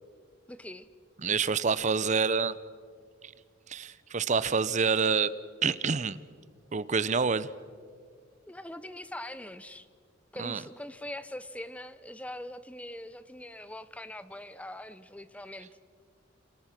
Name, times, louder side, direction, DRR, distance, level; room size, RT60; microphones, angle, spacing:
voice 1, 0.5-0.9 8.5-9.9 10.3-15.7, left 1 dB, 5° left, 14 dB, 0.7 m, -42 dB
voice 2, 1.2-2.5 3.7-5.3 5.6-6.2 6.7-7.5 10.4-10.6, right 5 dB, 35° right, 17 dB, 0.6 m, -27 dB
27.0 x 25.5 x 6.0 m, 2.2 s
head